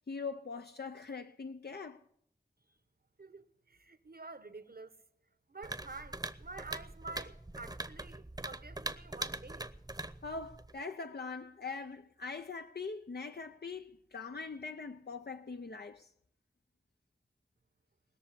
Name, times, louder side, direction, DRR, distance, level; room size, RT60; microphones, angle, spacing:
voice 1, 0.1-2.0 10.2-16.1, left 4 dB, 80° left, 0.6 m, -42 dB
voice 2, 3.2-5.0 5.5-9.7, right 3 dB, 70° right, 1.1 m, -49 dB
sound 1, 5.6-10.8, right 2 dB, 25° right, 0.8 m, -42 dB
20.0 x 6.8 x 9.8 m
wide cardioid pair, 45°, 17 cm